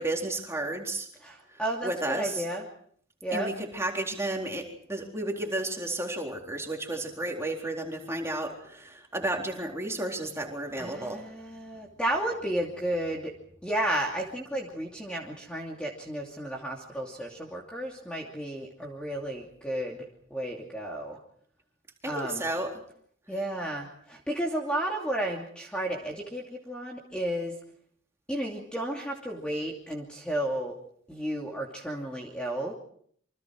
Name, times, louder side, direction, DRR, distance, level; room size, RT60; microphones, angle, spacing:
voice 1, 0.0-1.1 1.5-2.5 3.3-11.3 22.0-22.8, right 2 dB, 15° right, 1 dB, 4.0 m, -32 dB
voice 2, 1.2-2.6 3.2-3.5 10.8-13.3 13.6-21.2 22.1-22.4 23.3-27.5 28.3-30.7 31.1-32.7, right 1 dB, 5° left, -1 dB, 2.7 m, -33 dB
28.0 x 25.0 x 4.7 m, 0.62 s
head